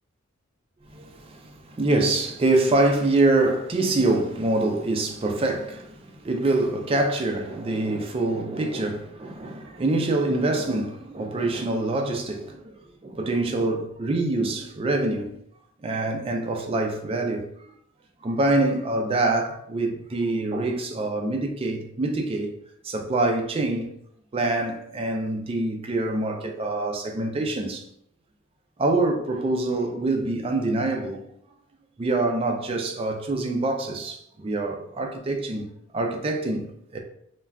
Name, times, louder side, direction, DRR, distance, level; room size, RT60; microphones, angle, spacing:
voice 1, 0.9-15.3 15.8-17.5 18.2-22.5 22.8-23.9 24.3-27.8 28.8-31.2 32.0-35.7 35.9-37.0, right 2 dB, 25° right, 0.3 m, -25 dB
2.2 x 2.2 x 3.4 m
head